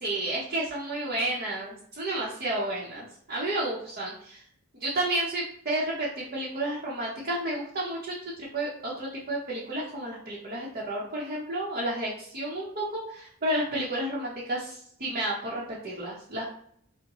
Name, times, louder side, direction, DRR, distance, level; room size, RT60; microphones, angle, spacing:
voice 1, 0.0-4.4 4.7-16.4, right 1 dB, 45° right, -6 dB, 0.8 m, -31 dB
5.3 x 2.1 x 3.0 m, 0.65 s
head